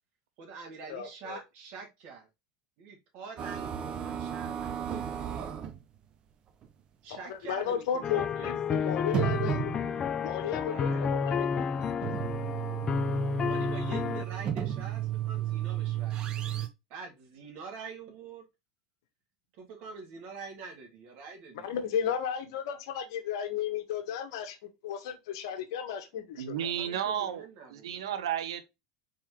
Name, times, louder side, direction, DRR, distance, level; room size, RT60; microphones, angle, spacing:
voice 1, 0.4-2.3 2.8-5.6 7.0-9.0 10.7-11.1 13.4-16.2 16.9-18.4 19.6-21.7 26.6-28.0, right 5 dB, 60° right, 1.8 m, -45 dB
voice 2, 0.9-1.4 7.1-9.7 10.2-11.6 12.0-12.2 21.6-24.6 24.8-26.7, left 8 dB, 75° left, 1.0 m, -34 dB
sound 1, 3.4-5.8 6.6-6.7 7.1-7.2 8.2-8.3 9.0-10.1 11.6-16.7, right 10 dB, 40° right, 0.7 m, -33 dB
sound 2, 8.0-14.2, left 6 dB, 30° left, 0.3 m, -31 dB
voice 3, 26.4-28.6, right 9 dB, 85° right, 0.6 m, -33 dB
4.2 x 3.8 x 2.9 m
supercardioid pair, 110°, 3 cm